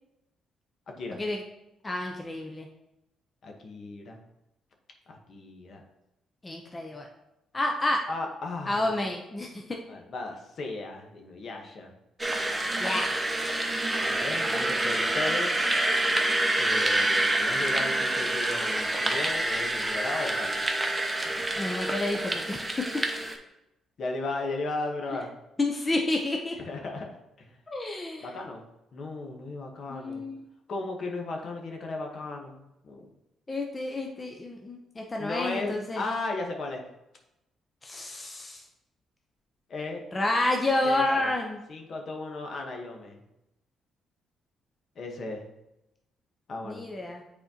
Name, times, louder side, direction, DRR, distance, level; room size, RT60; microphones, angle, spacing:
voice 1, 0.9-1.2 3.4-4.2 5.1-5.8 8.1-9.0 9.9-11.9 14.0-15.5 16.6-20.6 21.2-21.6 24.0-25.3 26.7-27.1 27.4-27.6 28.2-28.6 28.9-30.2 30.7-33.0 35.2-36.8 39.7-40.0 40.8-41.3 41.7-43.2 45.0-45.4 46.5-46.8, left 2 dB, 55° left, 2 dB, 1.1 m, -36 dB
voice 2, 1.8-2.7 6.4-7.1 7.5-8.0 8.7-9.8 12.8-13.2 21.6-22.6 25.6-26.6 27.7-28.3 29.9-30.4 33.5-36.0 37.8-38.6 40.1-41.6 46.6-47.2, left 2 dB, 25° left, 1 dB, 0.7 m, -29 dB
sound 1, 12.2-23.3, right 1 dB, 15° right, 0.8 m, -27 dB
8.1 x 4.2 x 2.9 m, 0.90 s
cardioid pair, 90°, 0 cm